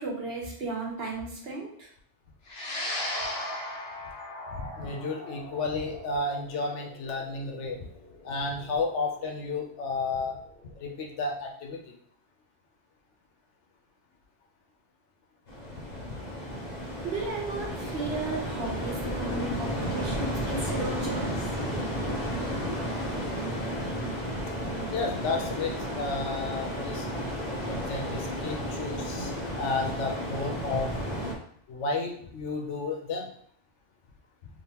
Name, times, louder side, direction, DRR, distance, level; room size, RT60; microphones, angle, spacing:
voice 1, 0.0-1.9 17.0-21.4, right 3 dB, 60° right, -2 dB, 1.2 m, -34 dB
sound 1, 2.5-11.0, left 1 dB, 65° left, 1.1 m, -38 dB
voice 2, 4.8-7.8 8.2-10.4 10.8-11.8 15.7-15.8 22.6-22.7 24.9-27.0 27.7-29.3 29.6-30.9 31.7-33.3, left 3 dB, 90° left, 1 dB, 1.0 m, -32 dB
sound 2, 15.5-31.3, equal, 45° left, 0.8 m, -33 dB
3.6 x 2.8 x 2.9 m, 0.63 s
omnidirectional pair, 1.2 m